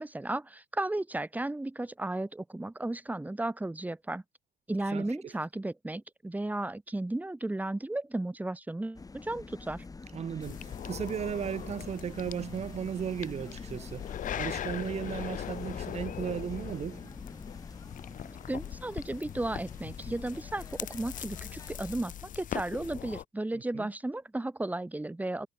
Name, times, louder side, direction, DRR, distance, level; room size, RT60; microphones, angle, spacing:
voice 1, 0.0-4.2 4.7-9.8 18.5-25.5, right 2 dB, 10° right, 2.1 m, -34 dB
sound 1, 8.9-22.0, left 3 dB, 20° left, 7.4 m, -47 dB
voice 2, 10.1-14.1 14.4-17.1 23.7-23.9, right 8 dB, 40° right, 1.3 m, -35 dB
sound 2, 10.4-23.2, left 10 dB, 50° left, 1.2 m, -40 dB
cardioid pair, 110°, 17 cm